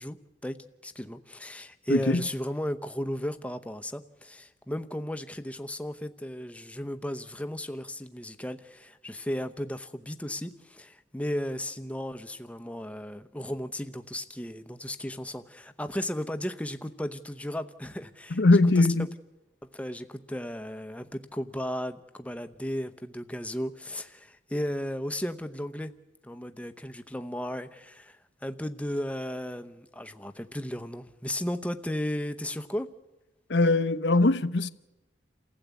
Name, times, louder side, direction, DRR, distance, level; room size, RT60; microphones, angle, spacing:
voice 1, 0.0-18.4 18.8-19.1 19.7-25.9 26.2-32.9, left 1 dB, 10° left, 0.9 m, -35 dB
voice 2, 1.9-2.3 18.3-19.1 33.5-34.7, left 2 dB, 80° left, 0.8 m, -21 dB
28.5 x 15.5 x 8.3 m
head